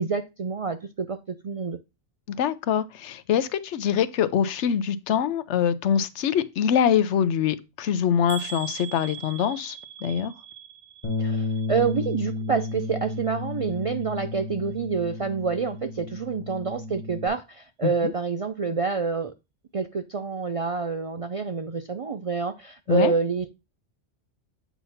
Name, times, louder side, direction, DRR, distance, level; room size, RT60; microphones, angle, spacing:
voice 1, 0.0-1.8 11.2-19.3 19.7-23.5, right 5 dB, 60° right, 0.3 m, -27 dB
voice 2, 2.3-9.8 10.0-10.3 17.8-18.1 22.9-23.1, left 8 dB, 85° left, 0.9 m, -24 dB
sound 1, 8.3-12.3 12.6-13.2 13.6-13.8 14.1-14.2, right 9 dB, 75° right, 1.4 m, -41 dB
Bass guitar, 11.0-17.3, left 3 dB, 40° left, 1.4 m, -32 dB
8.2 x 2.9 x 5.6 m
omnidirectional pair, 1.1 m